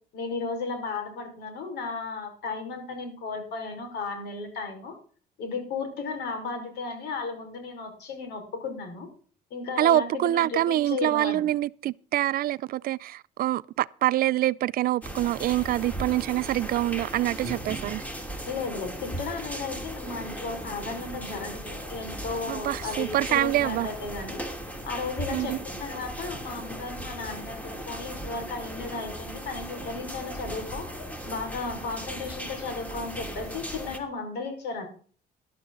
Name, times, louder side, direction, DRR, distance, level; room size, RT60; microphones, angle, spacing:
voice 1, 0.1-5.0 5.4-9.1 9.5-11.4 18.5-24.4 24.8-30.9 31.2-34.9, left 4 dB, 80° left, 5.0 m, -34 dB
voice 2, 9.8-18.0 22.5-23.9 25.3-25.6, right 14 dB, 60° right, 0.5 m, -25 dB
sound 1, 15.0-34.0, right 1 dB, 10° left, 2.8 m, -37 dB
13.0 x 12.0 x 3.9 m
cardioid pair, 110°, 17 cm